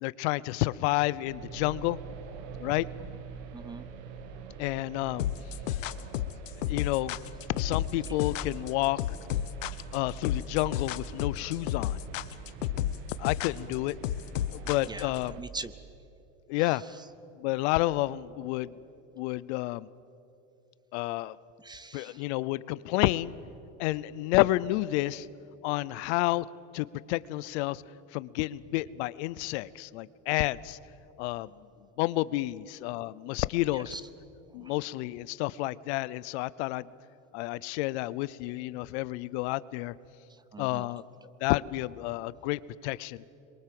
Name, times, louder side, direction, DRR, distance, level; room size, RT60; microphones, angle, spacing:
voice 1, 0.0-2.0 2.6-2.9 4.6-5.2 6.7-7.1 7.6-9.0 9.9-12.0 13.2-13.9 14.5-15.3 16.5-16.8 17.4-18.7 19.2-19.9 20.9-21.3 21.9-23.3 23.8-25.3 25.6-26.5 26.7-27.8 28.1-30.8 31.2-31.5 32.0-33.9 34.5-36.8 37.3-39.9 40.6-41.0 41.4-43.2, left 18 dB, 60° left, 19 dB, 0.7 m, -30 dB
sound 1, 1.2-15.4, right 5 dB, 65° right, 1.9 m, -45 dB
voice 2, 3.5-3.8 14.8-15.1 15.4-15.7 16.6-17.0 21.6-22.2 33.7-34.1 34.6-34.7 40.3-40.9, right 3 dB, 10° right, 15 dB, 0.6 m, -42 dB
sound 2, 5.2-15.2, left 12 dB, 85° left, 1.1 m, -32 dB
27.0 x 22.5 x 7.8 m, 2.8 s
supercardioid pair, 130°, 37 cm